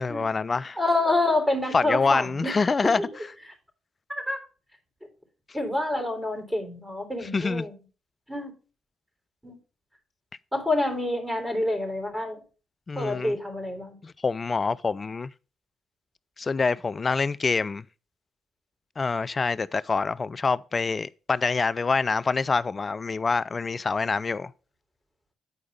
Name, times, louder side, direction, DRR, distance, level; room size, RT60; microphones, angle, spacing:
voice 1, 0.0-0.8 1.7-3.0 7.3-7.7 12.9-13.4 14.0-15.3 16.4-17.8 19.0-24.5, left 4 dB, 40° left, 0.4 m, -26 dB
voice 2, 0.8-2.5 3.0-3.1 4.1-4.4 5.5-7.7 8.3-8.5 9.4-9.6 10.5-12.4 13.0-14.0, left 2 dB, 10° right, 3.8 m, -27 dB
9.5 x 4.7 x 5.4 m
hypercardioid pair, 45°, 0 cm